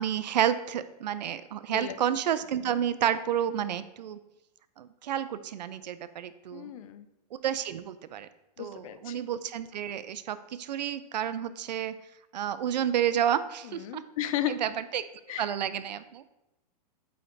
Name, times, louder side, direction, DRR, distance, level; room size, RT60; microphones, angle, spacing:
voice 1, 0.0-4.2 4.8-6.7 7.4-8.3 8.6-12.0 12.3-14.0 14.5-15.0 15.4-16.5, right 10 dB, 90° right, 14 dB, 0.5 m, -30 dB
voice 2, 6.5-7.1 8.6-9.2 13.6-14.6 15.3-15.5, left 12 dB, 55° left, 11 dB, 0.6 m, -34 dB
8.6 x 3.4 x 3.8 m, 0.93 s
hypercardioid pair, 145°, 21 cm